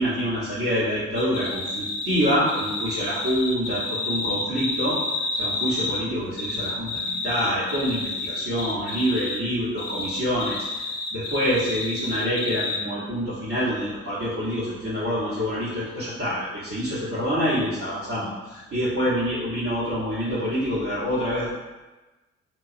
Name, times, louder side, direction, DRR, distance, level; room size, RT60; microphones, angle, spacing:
voice 1, 0.0-5.0 5.4-21.5, equal, 40° right, -12 dB, 1.0 m, -26 dB
sound 1, 1.2-6.0 6.4-9.4 9.8-12.8, left 2 dB, 55° left, 0.5 m, -30 dB
3.0 x 2.2 x 2.5 m, 1.1 s
figure-of-eight pair, 40°, 33 cm